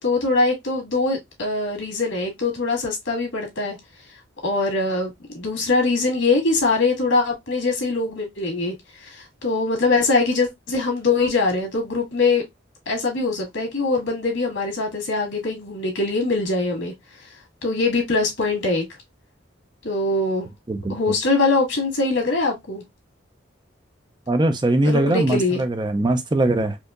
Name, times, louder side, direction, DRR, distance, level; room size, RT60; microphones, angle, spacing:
voice 1, 0.0-3.8 4.4-12.4 12.9-16.9 17.6-18.9 19.8-20.5 20.9-22.8 24.8-25.6, left 3 dB, 85° left, 1.9 m, -22 dB
voice 2, 24.3-26.8, right 1 dB, 20° right, 0.4 m, -21 dB
4.4 x 2.8 x 2.4 m
head